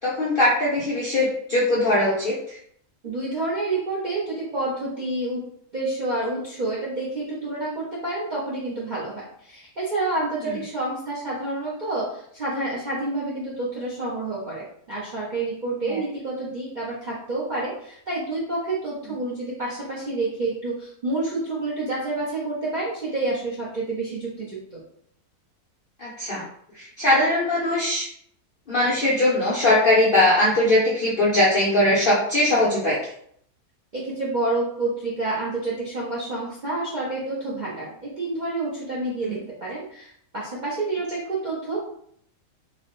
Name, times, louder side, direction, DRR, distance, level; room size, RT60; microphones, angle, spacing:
voice 1, 0.0-2.6 15.8-16.0 26.0-26.5 26.7-28.1 28.7-33.0 39.2-39.4, left 1 dB, 60° left, -7 dB, 0.5 m, -20 dB
voice 2, 3.0-5.4 5.7-24.8 33.9-41.8, right 2 dB, 55° right, -8 dB, 0.5 m, -28 dB
2.7 x 2.0 x 2.9 m, 0.67 s
omnidirectional pair, 1.6 m